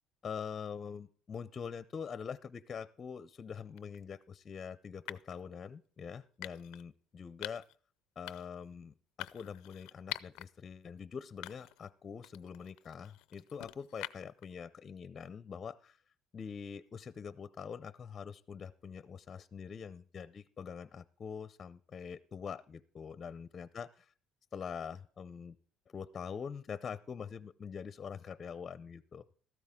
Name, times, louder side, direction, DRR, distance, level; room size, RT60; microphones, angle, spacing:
voice 1, 0.2-7.7 8.2-16.0 16.3-23.9 24.5-25.6 25.9-29.3, left 6 dB, 35° left, 16 dB, 0.6 m, -44 dB
sound 1, 3.8-4.0 5.1-5.4 6.4-6.8 7.4-7.8 8.3-8.6 9.2-10.5 10.9-11.0 11.4-11.9 12.2-14.4, left 18 dB, 85° left, 0.5 m, -45 dB
14.0 x 13.0 x 3.7 m, 0.44 s
cardioid pair, 110°, 0 cm